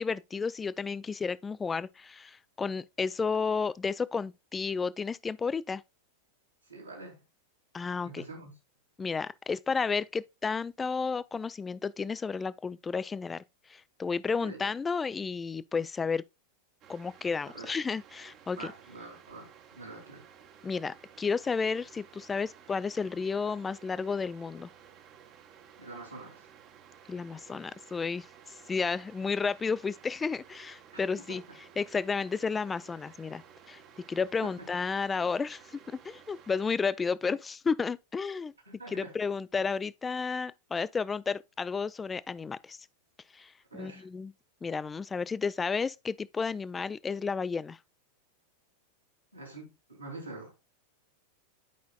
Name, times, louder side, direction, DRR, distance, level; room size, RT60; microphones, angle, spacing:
voice 1, 0.0-5.8 7.7-8.2 9.0-13.4 13.7-16.2 16.9-18.7 20.6-24.7 27.1-28.3 28.7-31.4 31.8-33.4 33.7-33.8 34.1-38.5 38.9-42.8 43.3-44.3 44.6-47.8, left 5 dB, 15° left, 0.3 m, -32 dB
voice 2, 6.7-7.2 8.0-8.5 14.4-14.6 17.5-17.8 18.6-20.3 25.8-26.5 30.9-31.4 34.4-34.7 38.7-39.1 43.7-44.0 49.3-50.5, right 2 dB, 85° right, 2.9 m, -45 dB
sound 1, 16.8-36.8, right 8 dB, 35° right, 0.9 m, -55 dB
10.5 x 5.1 x 2.3 m
figure-of-eight pair, 90°, 0 cm